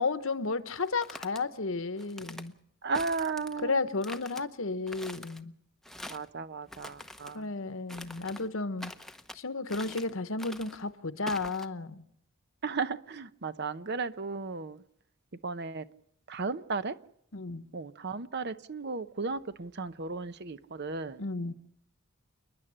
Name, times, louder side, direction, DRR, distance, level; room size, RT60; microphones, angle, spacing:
voice 1, 0.0-2.5 3.6-5.5 7.3-8.9 9.3-12.0 17.3-17.6 21.2-21.5, left 3 dB, 60° left, 1.0 m, -33 dB
sound 1, 0.8-1.4 2.0-2.5 2.9-3.6 4.0-4.4 4.9-5.4 5.8-6.3 6.7-7.4 7.9-8.5 8.8-9.4 9.7-10.1 10.4-10.8 11.3-11.7, left 1 dB, ahead, 0.8 m, -45 dB
voice 2, 2.8-3.8 6.1-7.4 12.6-14.8 15.4-15.8 16.3-16.9 17.7-21.2, right 4 dB, 50° right, 0.8 m, -35 dB
29.0 x 10.5 x 10.0 m
head